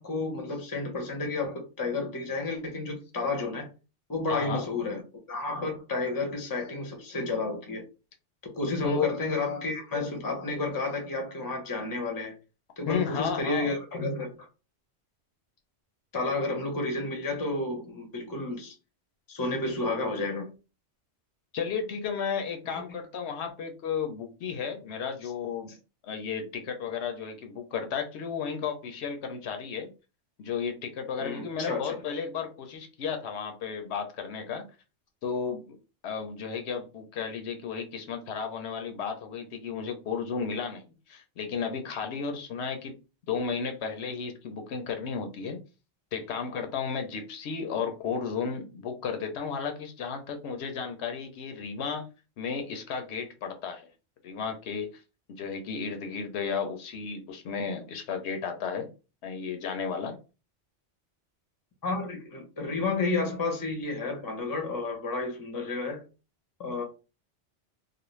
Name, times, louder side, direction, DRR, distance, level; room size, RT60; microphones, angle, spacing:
voice 1, 0.0-3.7 4.1-5.0 5.3-7.8 8.5-12.3 12.8-14.3 16.1-18.7 19.3-20.5 22.7-22.8 31.2-32.0 61.8-66.0 66.6-66.8, left 3 dB, 25° left, 0.6 m, -31 dB
voice 2, 4.3-4.7 8.8-9.1 12.9-13.8 21.5-25.7 26.0-29.9 30.4-34.6 35.2-35.8 36.0-43.0 43.3-45.6 46.1-52.1 52.4-53.9 54.2-54.9 55.4-58.9 59.2-60.2, left 6 dB, 75° left, 0.8 m, -33 dB
2.4 x 2.1 x 3.0 m
omnidirectional pair, 1.2 m